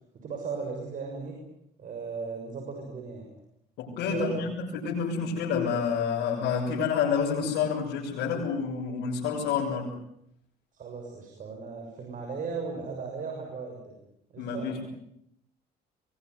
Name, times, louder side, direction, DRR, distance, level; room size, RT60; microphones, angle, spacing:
voice 1, 0.1-1.3 1.8-3.3 4.1-4.4 10.7-14.0 14.3-14.7, right 5 dB, 50° right, 2 dB, 6.7 m, -36 dB
voice 2, 3.8-9.9 14.4-14.9, left 6 dB, 80° left, -5 dB, 7.8 m, -29 dB
23.5 x 22.5 x 9.6 m, 0.76 s
cardioid pair, 110°, 17 cm